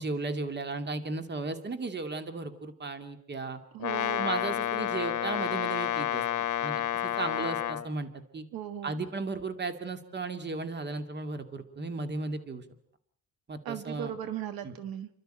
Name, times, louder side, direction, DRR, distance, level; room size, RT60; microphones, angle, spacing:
voice 1, 0.0-3.6 4.2-8.4 8.8-12.6 13.5-14.1 14.6-14.7, right 3 dB, 30° right, 9 dB, 2.4 m, -35 dB
voice 2, 3.7-4.3 8.5-8.9 13.6-15.1, right 10 dB, 80° right, 11 dB, 1.7 m, -37 dB
Brass instrument, 3.8-7.9, left 11 dB, 60° left, 1.6 m, -30 dB
29.0 x 12.5 x 9.0 m, 0.68 s
cardioid pair, 125°, 35 cm